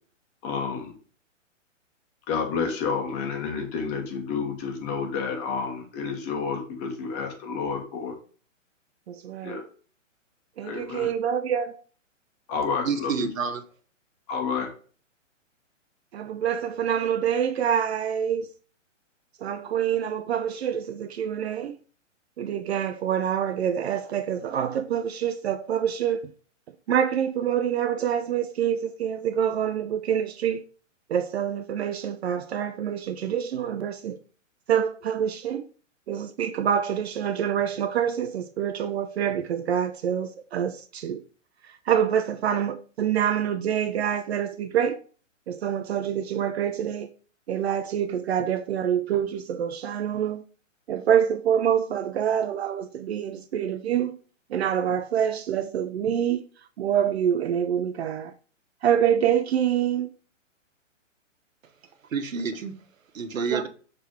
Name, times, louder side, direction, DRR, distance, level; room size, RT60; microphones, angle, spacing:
voice 1, 0.4-0.9 2.3-8.1 9.4-9.6 10.6-11.1 12.5-13.3 14.3-14.7, left 5 dB, 25° left, 1.5 m, -30 dB
voice 2, 9.1-9.6 10.6-11.8 16.1-18.5 19.4-21.8 22.4-26.3 26.9-30.6 31.1-34.2 34.7-35.7 36.1-41.2 41.9-45.0 45.5-47.1 47.5-50.4 50.9-54.1 54.5-56.4 56.8-58.3 58.8-60.1 63.5-63.6, right 9 dB, 55° right, 0.6 m, -26 dB
voice 3, 12.8-13.6 62.1-62.7 63.1-63.7, right 5 dB, 85° right, 1.2 m, -28 dB
6.8 x 3.5 x 4.6 m
hypercardioid pair, 145°, 39 cm